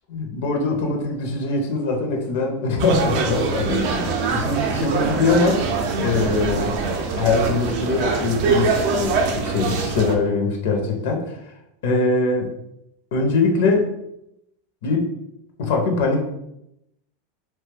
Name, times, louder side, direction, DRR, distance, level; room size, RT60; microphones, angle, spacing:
voice 1, 0.1-5.7 6.0-6.7 7.2-11.5 11.8-12.5 13.1-14.0 14.8-15.1 15.6-16.2, left 3 dB, 70° left, 2 dB, 0.6 m, -22 dB
sound 1, 2.8-10.1, right 4 dB, 50° right, 0.4 m, -23 dB
2.9 x 2.2 x 3.2 m, 0.82 s
supercardioid pair, 155°, 0 cm